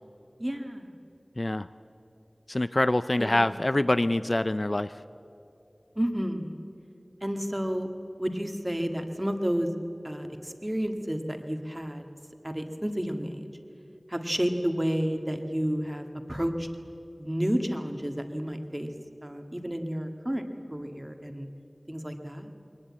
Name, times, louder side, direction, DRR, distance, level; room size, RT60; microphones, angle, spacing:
voice 1, 0.4-0.9 3.2-3.3 3.8-3.9 5.9-6.6 7.2-7.9 8.2-9.7 10.0-12.0 12.4-13.4 14.1-16.7 17.2-18.9 19.2-20.4 20.7-21.5 21.9-22.5, equal, 20° right, 5 dB, 1.8 m, -31 dB
voice 2, 1.4-1.7 2.5-4.9, left 1 dB, 45° left, 13 dB, 0.4 m, -25 dB
21.0 x 19.5 x 8.6 m, 2.7 s
wide cardioid pair, 50°, 0 cm